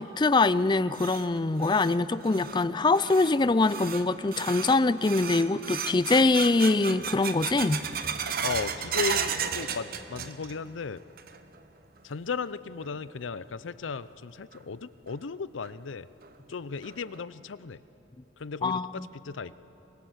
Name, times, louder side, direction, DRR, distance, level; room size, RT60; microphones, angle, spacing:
voice 1, 0.0-7.9 18.6-19.1, left 3 dB, 25° left, 16 dB, 0.4 m, -24 dB
sound 1, 0.6-10.7 11.0-11.6 12.0-12.1 12.8-12.9 14.5-14.6 15.1-15.2 15.6-15.7 16.2-16.3 16.8-17.2, right 7 dB, 50° right, 1.0 m, -35 dB
voice 2, 8.4-11.0 12.0-16.1 16.5-17.8 18.4-19.6, left 5 dB, 90° left, 16 dB, 0.6 m, -35 dB
24.5 x 19.0 x 7.9 m, 3.0 s
head